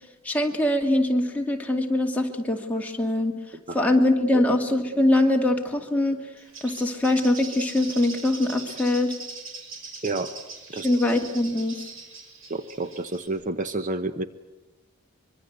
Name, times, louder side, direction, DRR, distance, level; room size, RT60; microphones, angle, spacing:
voice 1, 0.2-3.4 3.7-6.2 6.6-9.1 10.8-11.8, left 1 dB, 5° left, 1 dB, 2.3 m, -23 dB
Bird, 6.4-13.3, right 4 dB, 65° right, 5.6 m, -41 dB
voice 2, 12.5-14.3, right 2 dB, 35° right, 10 dB, 0.9 m, -29 dB
25.0 x 23.5 x 8.1 m, 1.0 s
head